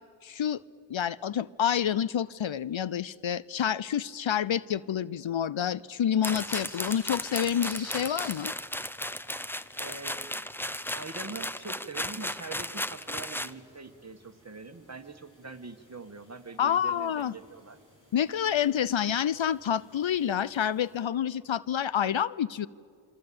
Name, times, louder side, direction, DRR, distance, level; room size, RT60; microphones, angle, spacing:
voice 1, 0.2-0.6 0.9-8.5 16.6-17.3 18.1-22.7, left 9 dB, 65° left, 19 dB, 0.7 m, -28 dB
sound 1, 6.2-13.5, left 1 dB, 5° left, 0.7 m, -35 dB
sound 2, 6.4-21.0, equal, 40° left, 7.6 m, -55 dB
voice 2, 9.8-10.4 10.9-17.8, right 3 dB, 30° right, 8 dB, 1.6 m, -43 dB
26.5 x 24.5 x 8.6 m, 2.3 s
cardioid pair, 45°, 50 cm